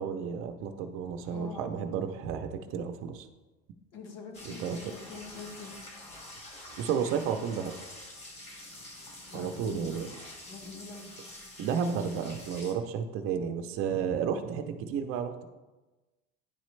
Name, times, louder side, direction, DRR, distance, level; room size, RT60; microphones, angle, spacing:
voice 1, 0.0-3.3 4.5-4.8 6.8-7.8 9.3-10.1 11.6-15.4, right 7 dB, 45° right, 7 dB, 0.5 m, -32 dB
voice 2, 1.2-1.7 3.9-5.7 9.3-9.9 10.5-11.2, left 4 dB, 65° left, 3 dB, 1.3 m, -44 dB
sound 1, 4.3-12.7, left 1 dB, 20° left, 0.8 m, -47 dB
9.8 x 4.1 x 3.2 m, 1.2 s
cardioid pair, 170°, 31 cm